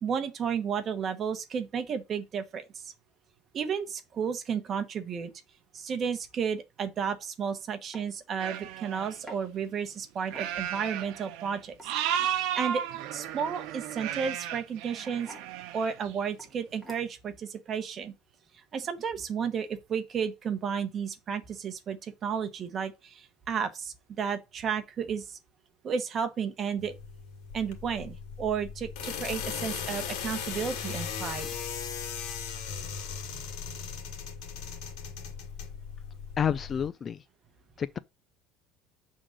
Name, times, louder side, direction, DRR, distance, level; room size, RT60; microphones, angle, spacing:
voice 1, 0.0-2.9 3.5-5.3 5.7-11.7 12.3-12.8 13.1-15.3 15.7-18.1 18.7-25.4 25.8-26.9 27.5-31.5, right 7 dB, 30° right, 1.1 m, -32 dB
sound 1, 7.2-7.4 7.9-8.1 9.3-9.4 10.3-10.8 11.7-12.4 14.0-14.3 15.0-15.5 16.4-16.5 16.8-17.3, equal, ahead, 1.8 m, -48 dB
sound 2, 8.4-9.1 10.3-11.6 11.8-15.9, right 10 dB, 65° right, 0.8 m, -34 dB
sound 3, 26.8-36.9, left 7 dB, 70° left, 2.0 m, -38 dB
voice 2, 36.4-37.2 37.8-38.0, left 8 dB, 25° left, 0.3 m, -29 dB
7.0 x 3.8 x 6.3 m
cardioid pair, 160°, 0 cm